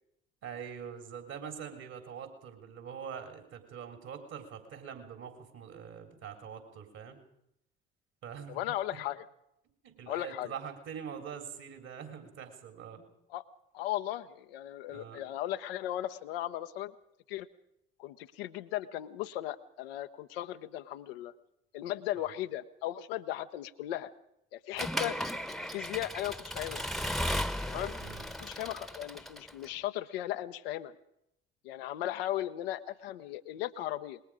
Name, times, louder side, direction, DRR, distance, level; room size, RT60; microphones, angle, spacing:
voice 1, 0.4-7.2 8.2-9.0 9.8-13.1 14.9-15.2 22.1-22.3 28.0-28.2, right 7 dB, 60° right, 5 dB, 3.9 m, -44 dB
voice 2, 8.5-9.2 10.1-10.6 13.3-13.4 13.7-16.9 17.3-17.5 18.0-21.3 21.7-24.1 24.5-25.2 25.6-26.9 27.7-27.9 28.4-30.9 31.6-34.2, left 13 dB, 75° left, 9 dB, 0.9 m, -37 dB
Accelerating revving vroom / Mechanisms, 24.8-29.7, equal, ahead, 1.2 m, -35 dB
26.0 x 20.5 x 5.0 m, 0.79 s
figure-of-eight pair, 50°, 29 cm